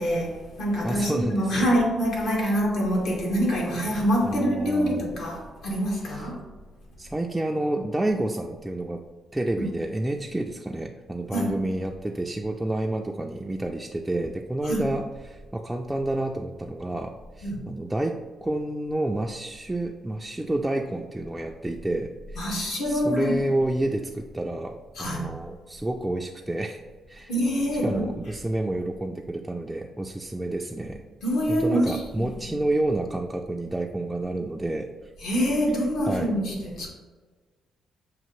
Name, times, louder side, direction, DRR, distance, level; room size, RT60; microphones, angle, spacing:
voice 1, 0.0-6.4 9.6-9.7 11.3-11.5 14.6-14.8 17.4-17.6 22.4-23.3 25.0-25.3 27.3-28.1 31.2-32.0 35.2-36.9, equal, 75° left, -2 dB, 1.3 m, -25 dB
voice 2, 0.8-1.7 2.4-2.5 4.2-5.1 6.1-6.3 7.0-9.0 9.3-26.8 27.1-27.3 27.8-31.0 31.5-35.1 36.1-36.3, right 1 dB, 10° right, 1 dB, 0.3 m, -29 dB
6.6 x 2.5 x 3.0 m, 1.4 s
cardioid pair, 90°, 0 cm